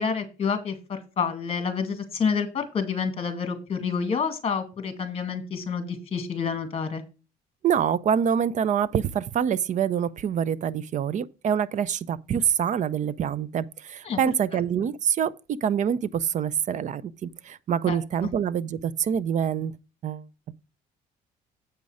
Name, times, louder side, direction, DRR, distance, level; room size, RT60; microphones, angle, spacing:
voice 1, 0.0-7.0 14.1-14.2 14.5-14.6 17.9-18.3, left 6 dB, 35° left, 2.0 m, -28 dB
voice 2, 7.6-15.3 15.6-19.7 20.0-20.3, right 8 dB, 45° right, 0.6 m, -26 dB
8.1 x 5.4 x 4.9 m
cardioid pair, 110°, 17 cm